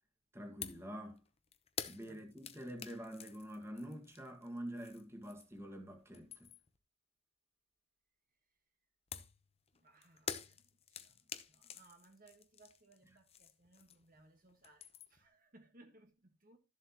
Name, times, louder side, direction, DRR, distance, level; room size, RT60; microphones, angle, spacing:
voice 1, 0.3-1.2 1.9-6.5, equal, 10° right, 1.8 m, -47 dB
sound 1, 0.6-0.9 1.2-5.7 6.0-6.8 9.1-14.2 14.5-15.3, left 7 dB, 30° left, 0.8 m, -48 dB
voice 2, 9.7-16.6, right 2 dB, 40° right, 1.5 m, -65 dB
13.5 x 7.6 x 3.0 m
head